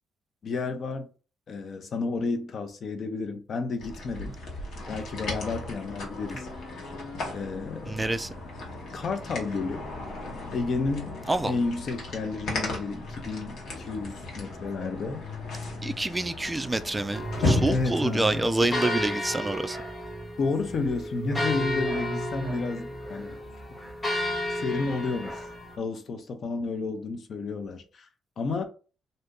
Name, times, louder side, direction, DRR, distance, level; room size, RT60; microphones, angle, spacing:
voice 1, 0.4-1.1 1.5-4.3 4.9-6.5 7.3-8.2 8.9-9.9 10.5-11.1 11.4-15.2 17.7-18.8 20.4-23.4 24.5-25.5 25.8-28.0 28.4-28.7, left 4 dB, 50° left, 0.6 m, -31 dB
sound 1, 3.8-18.0, left 2 dB, 70° left, 1.2 m, -35 dB
voice 2, 7.9-8.3 11.3-11.5 15.8-19.8, right 2 dB, 15° right, 0.3 m, -27 dB
sound 2, 17.1-25.8, equal, 15° left, 1.0 m, -32 dB
2.6 x 2.6 x 3.6 m
cardioid pair, 105°, 0 cm